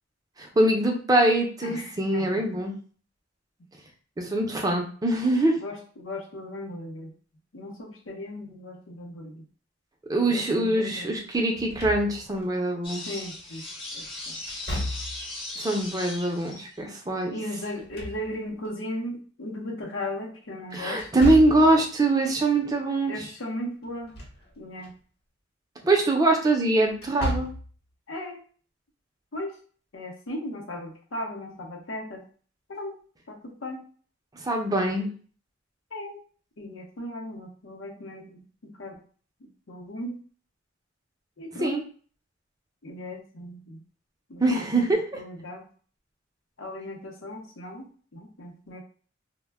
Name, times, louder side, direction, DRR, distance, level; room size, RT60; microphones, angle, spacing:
voice 1, 0.4-2.8 4.2-5.6 10.1-13.0 15.6-17.4 20.7-23.3 25.8-27.5 34.3-35.1 41.5-41.8 44.4-45.2, right 2 dB, 20° right, 2 dB, 0.5 m, -23 dB
voice 2, 1.6-2.4 5.6-7.1 7.5-9.4 10.3-11.1 13.1-13.6 13.9-14.4 17.3-21.1 23.1-24.2 24.6-24.9 28.1-28.4 29.3-29.5 29.9-32.2 32.7-32.9 33.3-33.8 35.9-36.2 36.6-38.9 39.4-40.2 41.4-41.8 42.8-43.8 44.3-44.9 45.1-45.7 46.6-48.8, left 1 dB, 80° left, 1 dB, 0.7 m, -37 dB
Slam / Thump thud, 11.6-12.5 14.5-15.4 17.6-18.7 21.0-21.8 23.9-24.4 24.8-24.9 26.9-27.7, equal, 55° left, 1.0 m, -33 dB
sound 1, 12.8-16.9, left 2 dB, 25° left, 0.7 m, -38 dB
2.1 x 2.1 x 3.4 m, 0.42 s
head